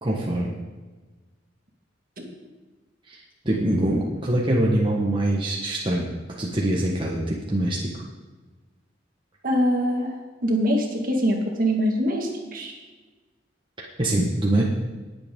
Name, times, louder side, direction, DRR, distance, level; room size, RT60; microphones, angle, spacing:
voice 1, 0.0-0.6 3.1-6.1 6.4-7.9 14.0-14.6, right 1 dB, 25° right, -3 dB, 1.4 m, -24 dB
voice 2, 9.4-10.2 10.4-12.7, equal, 50° right, 1 dB, 1.9 m, -23 dB
19.0 x 7.8 x 3.8 m, 1.3 s
head